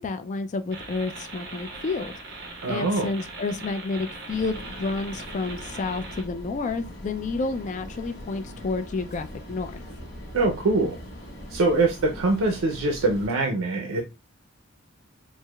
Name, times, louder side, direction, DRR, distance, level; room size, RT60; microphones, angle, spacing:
voice 1, 0.0-2.1 2.7-9.8, left 3 dB, 35° left, 0.3 m, -30 dB
sound 1, 0.7-6.2, right 3 dB, 55° right, 1.0 m, -40 dB
voice 2, 2.6-3.1 10.3-11.0 11.5-14.0, right 2 dB, 85° right, 0.5 m, -23 dB
sound 2, 4.3-13.3, equal, 55° left, 0.9 m, -41 dB
4.6 x 2.1 x 2.2 m
head